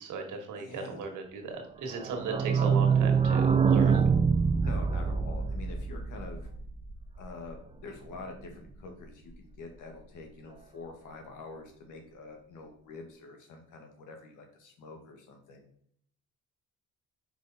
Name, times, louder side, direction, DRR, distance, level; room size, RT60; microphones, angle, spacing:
voice 1, 0.0-4.0, right 4 dB, 80° right, 4 dB, 1.5 m, -37 dB
voice 2, 0.6-1.1 3.8-4.0 4.6-6.5 7.2-15.7, left 3 dB, 85° left, 3 dB, 1.6 m, -46 dB
sound 1, 1.9-7.5 7.8-7.9 8.1-8.2 8.4-8.5, right 6 dB, 20° right, 0.5 m, -25 dB
5.1 x 4.9 x 4.0 m, 0.64 s
cardioid pair, 90°, 30 cm